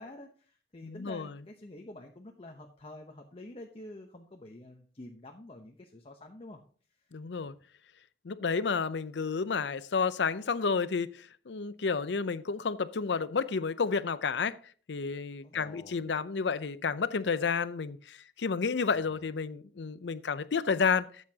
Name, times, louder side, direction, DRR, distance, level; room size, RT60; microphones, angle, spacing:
voice 1, 0.0-6.6 6.9-7.2 15.4-16.2 18.9-19.3, left 1 dB, 35° left, 0.9 m, -48 dB
voice 2, 0.8-1.3 7.1-7.5 8.2-14.6 14.9-21.1, left 5 dB, 85° left, 0.6 m, -31 dB
13.5 x 8.2 x 2.8 m
head